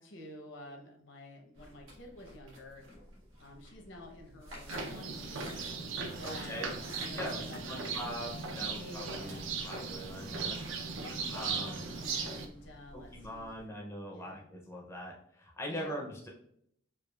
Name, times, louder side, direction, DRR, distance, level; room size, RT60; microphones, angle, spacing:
voice 1, 0.0-2.8 3.4-5.4 6.2-7.9 8.6-9.5 11.0-14.4 15.7-15.9, left 1 dB, 65° left, 2 dB, 0.7 m, -49 dB
sound 1, 1.6-13.7, equal, 85° right, 1.2 m, -51 dB
sound 2, 4.7-12.5, right 5 dB, 70° right, 0.5 m, -38 dB
voice 2, 6.2-6.7 7.1-10.6 11.3-11.8 12.9-16.3, equal, 15° left, -2 dB, 0.5 m, -42 dB
4.8 x 2.3 x 2.3 m, 0.71 s
head